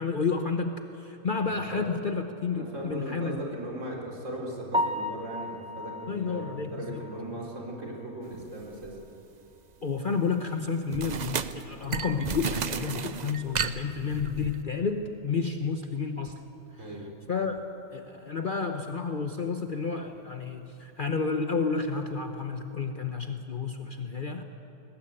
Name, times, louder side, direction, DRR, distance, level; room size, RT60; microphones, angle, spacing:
voice 1, 0.0-3.4 6.1-7.1 9.8-16.4 16.7-16.9 17.3-17.7 17.9-24.4, left 5 dB, 45° left, 6 dB, 1.0 m, -31 dB
voice 2, 1.5-1.9 2.5-9.0 16.8-17.0, right 1 dB, 65° right, -2 dB, 4.4 m, -38 dB
Piano, 4.7-8.7 9.1-9.2 9.7-9.8 10.1-10.2 13.3-13.4 21.9-22.1, left 1 dB, 5° right, 0.6 m, -35 dB
sound 1, 8.8-9.1 10.9-14.6, right 6 dB, 40° right, 0.7 m, -33 dB
21.5 x 19.5 x 8.8 m, 3.0 s
omnidirectional pair, 1.4 m